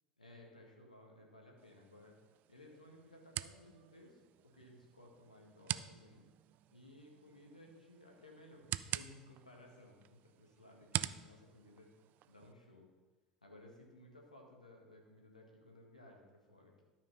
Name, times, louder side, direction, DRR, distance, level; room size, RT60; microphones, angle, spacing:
voice 1, 0.2-2.1 2.5-4.2 4.5-6.2 6.7-11.9 12.3-12.8 13.4-16.8, left 1 dB, 90° left, 0 dB, 1.8 m, -58 dB
sound 1, 1.6-12.5, right 14 dB, 45° right, 0.4 m, -46 dB
12.5 x 5.6 x 5.5 m, 1.2 s
figure-of-eight pair, 70°, 4 cm